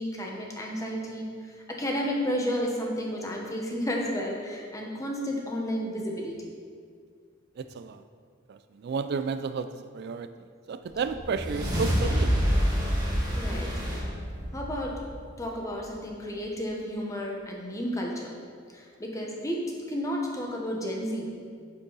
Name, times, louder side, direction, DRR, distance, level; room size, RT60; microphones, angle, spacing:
voice 1, 0.0-6.5 13.3-13.8 14.5-15.0 15.4-18.3 18.7-21.5, equal, 15° left, -1 dB, 1.1 m, -32 dB
voice 2, 7.6-8.0 8.5-10.3 10.7-12.4, right 5 dB, 55° right, 10 dB, 0.3 m, -32 dB
sound 1, 10.9-15.5, equal, 20° right, 2.0 m, -27 dB
8.3 x 7.9 x 4.0 m, 2.1 s
head